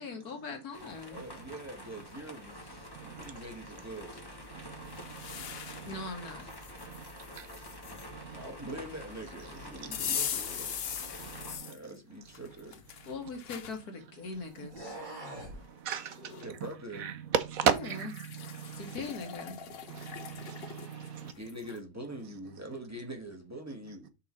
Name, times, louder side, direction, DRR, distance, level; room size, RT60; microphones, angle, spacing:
voice 1, 0.0-1.2 5.9-6.5 13.1-15.0 17.6-18.1 18.8-19.6, left 3 dB, 75° left, 2.0 m, -40 dB
sound 1, 0.7-11.6, left 1 dB, 15° left, 1.0 m, -47 dB
voice 2, 1.1-4.2 7.3-7.6 8.3-10.8 11.6-12.8 16.4-17.1 21.2-24.1, right 1 dB, 10° right, 1.3 m, -44 dB
voice 3, 2.9-3.3 4.5-6.1 6.8-7.1 7.3-7.5 8.1-8.4 11.2-11.7 15.4-16.5 17.0-19.0 19.8-21.3, right 8 dB, 70° right, 1.0 m, -36 dB
sound 2, 4.9-6.0 6.5-8.1 9.9-11.8 12.3-13.8 14.4-14.5 15.5-15.6 15.9-16.5 17.8-21.8, left 8 dB, 55° left, 0.7 m, -40 dB
sound 3, 12.4-13.9 14.6-15.6, right 1 dB, 30° right, 2.5 m, -45 dB
5.6 x 3.8 x 5.4 m
omnidirectional pair, 1.7 m